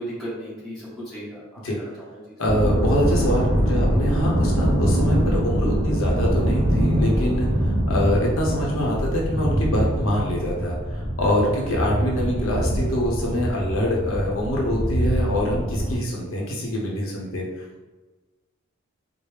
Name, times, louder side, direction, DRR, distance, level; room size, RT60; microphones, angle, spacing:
voice 1, 0.0-2.2, equal, ahead, -11 dB, 1.3 m, -35 dB
voice 2, 2.4-17.8, equal, 65° left, -3 dB, 0.7 m, -25 dB
sound 1, 2.4-15.9, equal, 20° left, 1.1 m, -23 dB
4.6 x 2.0 x 3.3 m, 1.2 s
head